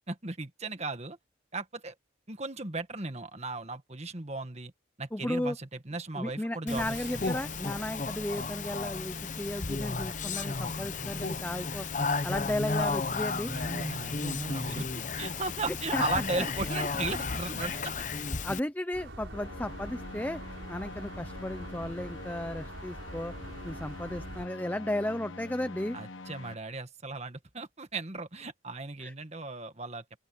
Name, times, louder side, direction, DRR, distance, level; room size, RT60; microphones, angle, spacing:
voice 1, 0.1-1.2 1.5-1.9 2.3-4.7 5.0-7.3 10.3-10.5 13.4-14.9 15.2-18.0 25.9-30.0, right 3 dB, 35° right, 1.7 m, -36 dB
voice 2, 5.1-5.6 6.2-11.9 12.2-13.5 15.7-16.0 16.4-16.7 17.7-17.8 18.4-20.4 20.7-23.3 23.6-26.0 29.0-29.1, left 1 dB, 10° left, 0.6 m, -34 dB
Speech, 6.7-18.6, left 4 dB, 40° left, 0.9 m, -33 dB
sound 1, 18.9-24.5, right 1 dB, 65° right, 5.0 m, -44 dB
sound 2, 19.3-26.5, left 3 dB, 80° left, 1.4 m, -45 dB
open air
head